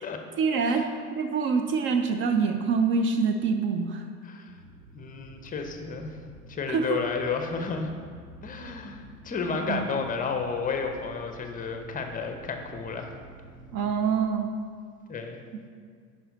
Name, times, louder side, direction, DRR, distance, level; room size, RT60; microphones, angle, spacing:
voice 1, 0.4-4.0 6.7-7.0 9.5-9.9 13.7-14.5, right 5 dB, 30° right, 5 dB, 0.4 m, -25 dB
sound 1, 4.5-14.1, right 1 dB, 85° right, 0.9 m, -49 dB
voice 2, 4.9-6.2 6.5-7.9 8.4-13.1 15.1-15.4, left 5 dB, 15° left, 5 dB, 0.8 m, -32 dB
10.0 x 4.5 x 4.0 m, 2.1 s
figure-of-eight pair, 75°, 47 cm